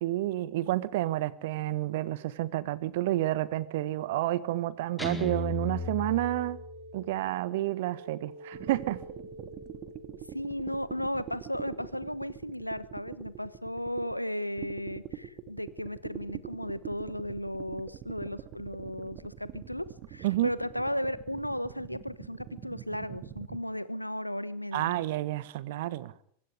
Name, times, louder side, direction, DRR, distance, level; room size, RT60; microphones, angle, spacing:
voice 1, 0.0-6.6 6.9-9.0 20.2-20.5 24.7-26.1, right 15 dB, 55° right, 17 dB, 1.5 m, -30 dB
Guitar, 5.0-7.0, left 3 dB, 5° left, 4.4 m, -36 dB
sound 1, 5.2-10.7, right 1 dB, 80° right, 4.7 m, -48 dB
sound 2, 8.5-14.1 14.6-23.6, right 11 dB, 35° right, 2.1 m, -44 dB
voice 2, 10.3-25.0, equal, 90° left, 17 dB, 1.1 m, -35 dB
24.5 x 22.0 x 5.1 m, 0.62 s
figure-of-eight pair, 90°, 0 cm